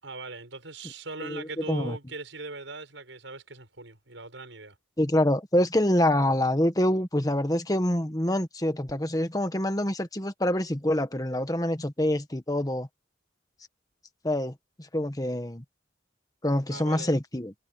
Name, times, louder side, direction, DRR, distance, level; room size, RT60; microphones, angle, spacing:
voice 1, 0.0-4.8 16.7-17.1, right 3 dB, 90° right, 6.8 m, -40 dB
voice 2, 1.2-2.0 5.0-12.9 14.2-14.5 14.9-15.6 16.4-17.5, left 1 dB, 20° left, 1.5 m, -26 dB
head